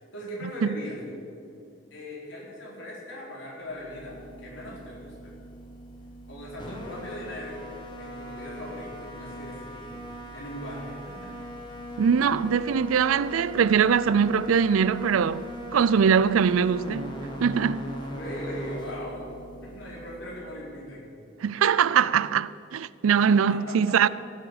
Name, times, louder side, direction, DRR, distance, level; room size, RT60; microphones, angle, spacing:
voice 1, 0.1-1.0 1.9-5.3 6.3-7.6 8.0-10.0 10.3-11.3 18.1-19.3 19.6-21.1 23.5-24.1, equal, 65° left, 4.2 m, -39 dB
sound 1, 3.7-20.9, left 1 dB, 20° left, 1.7 m, -40 dB
voice 2, 12.0-17.9 21.4-24.1, right 7 dB, 90° right, 0.4 m, -22 dB
16.5 x 7.7 x 8.0 m
head